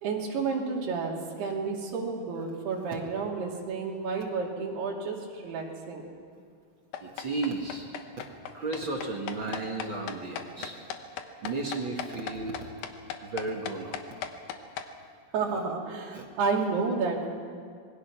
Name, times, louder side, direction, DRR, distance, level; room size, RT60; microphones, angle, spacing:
voice 1, 0.0-6.1 15.3-17.3, right 4 dB, 85° right, -1 dB, 4.8 m, -31 dB
sound 1, 6.9-14.9, left 9 dB, 75° left, 2.8 m, -37 dB
voice 2, 7.0-7.9 8.2-10.8 11.4-12.7 13.2-14.0 16.1-16.3, right 3 dB, 40° right, 0 dB, 2.0 m, -34 dB
26.5 x 21.0 x 6.1 m, 2.2 s
omnidirectional pair, 4.5 m